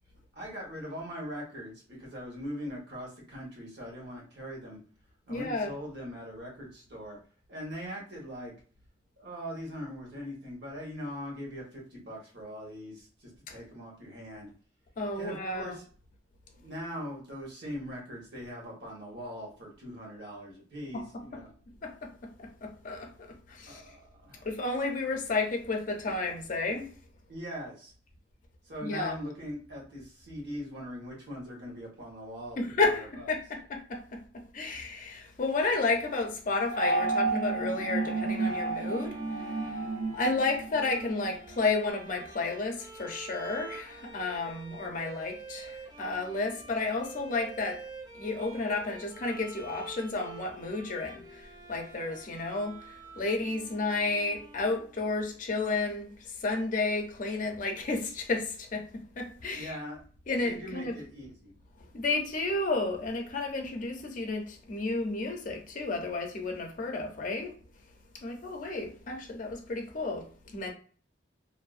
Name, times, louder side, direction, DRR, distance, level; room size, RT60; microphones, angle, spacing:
voice 1, 0.3-4.8 5.3-7.2 7.5-8.5 9.2-14.5 15.2-15.8 16.5-21.5 23.7-24.5 27.3-27.9 28.6-32.6 33.0-33.3 59.5-60.0 60.4-61.5, equal, 65° right, 1.1 m, -41 dB
voice 2, 5.3-5.7 13.5-13.6 15.0-15.8 20.9-21.0 21.3-21.4 21.8-23.8 24.4-26.9 28.8-29.2 32.6-39.8 40.1-47.8 48.1-52.8 53.2-59.7 60.3-60.9 61.9-67.5 68.2-70.7, left 3 dB, 45° left, 0.5 m, -32 dB
sound 1, 36.7-41.3, right 3 dB, 80° right, 0.7 m, -31 dB
Bowed string instrument, 38.6-55.2, right 3 dB, 20° right, 0.5 m, -48 dB
2.6 x 2.0 x 2.4 m
head